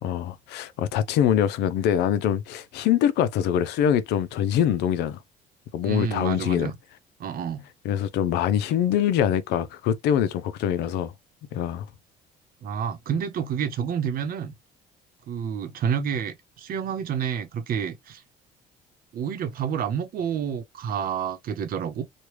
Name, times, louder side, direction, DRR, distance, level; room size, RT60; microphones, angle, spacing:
voice 1, 0.0-5.2 5.7-6.7 7.8-11.1 11.5-11.9, left 9 dB, 85° left, 0.5 m, -24 dB
voice 2, 5.8-6.8 7.2-7.7 12.6-14.5 15.3-18.2 19.1-22.0, right 8 dB, 60° right, 0.8 m, -29 dB
3.2 x 2.3 x 3.0 m
cardioid pair, 110°, 17 cm